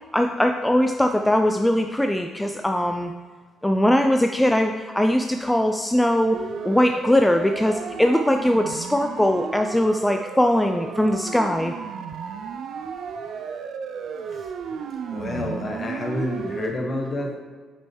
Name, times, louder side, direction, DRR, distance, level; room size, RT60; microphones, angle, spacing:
voice 1, 0.1-3.1 3.6-6.4 6.6-11.7, left 1 dB, 10° left, 5 dB, 0.4 m, -21 dB
Siren, 6.3-16.7, right 6 dB, 55° right, 0.4 m, -34 dB
voice 2, 15.1-17.3, left 1 dB, 40° left, 1 dB, 1.3 m, -29 dB
8.9 x 5.1 x 3.1 m, 1.5 s
figure-of-eight pair, 45°, 0 cm